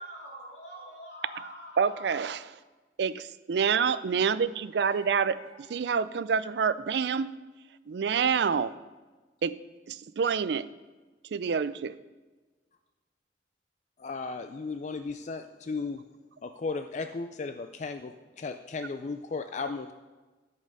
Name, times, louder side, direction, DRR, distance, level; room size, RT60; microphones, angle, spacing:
voice 1, 0.0-2.2 4.7-5.6, equal, 85° left, -2 dB, 2.7 m, -45 dB
voice 2, 1.8-2.5 3.0-7.3 7.9-8.7 9.4-9.6 9.9-10.7 11.3-11.9, right 6 dB, 65° right, 16 dB, 0.4 m, -27 dB
voice 3, 14.0-16.0 16.4-18.1 18.4-19.9, left 4 dB, 40° left, 8 dB, 0.4 m, -35 dB
10.5 x 5.4 x 6.6 m, 1.3 s
head